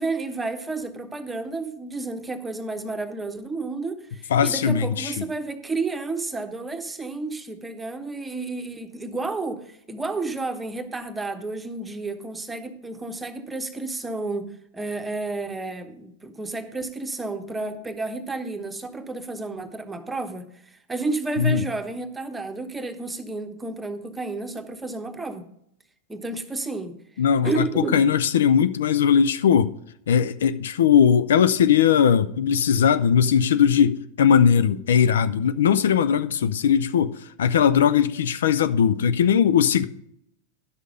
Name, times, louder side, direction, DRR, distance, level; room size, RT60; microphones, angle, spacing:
voice 1, 0.0-14.5 14.7-20.5 20.9-25.4 26.1-27.0 27.4-28.0, right 3 dB, 10° right, 1.1 m, -31 dB
voice 2, 4.3-5.2 21.4-21.7 27.2-29.7 30.1-39.8, left 8 dB, 60° left, 0.4 m, -19 dB
11.0 x 6.4 x 5.1 m
figure-of-eight pair, 90°, 0 cm